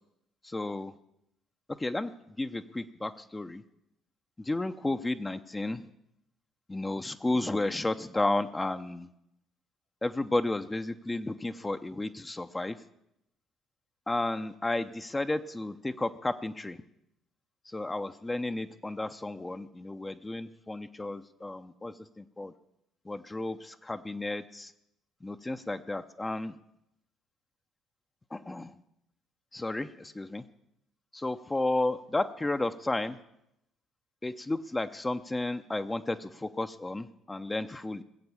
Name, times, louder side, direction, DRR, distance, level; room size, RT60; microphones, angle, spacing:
voice 1, 0.4-0.9 1.7-3.6 4.4-5.9 6.7-9.1 10.0-12.8 14.1-16.8 17.7-22.5 23.1-24.7 25.2-26.6 28.3-28.7 29.5-30.4 31.1-33.2 34.2-38.0, left 2 dB, 15° left, 8 dB, 0.7 m, -32 dB
19.5 x 7.9 x 7.1 m, 0.80 s
hypercardioid pair, 55°, 0 cm